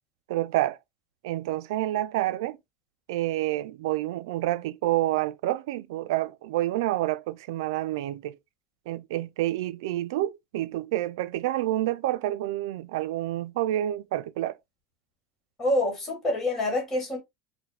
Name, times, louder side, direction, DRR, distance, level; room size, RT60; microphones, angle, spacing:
voice 1, 0.3-0.8 1.2-2.6 3.1-8.4 8.9-14.6, right 15 dB, 80° right, 0.3 m, -28 dB
voice 2, 15.6-17.2, left 1 dB, 15° left, 1.4 m, -26 dB
4.8 x 2.1 x 3.2 m
cardioid pair, 170°, 2 cm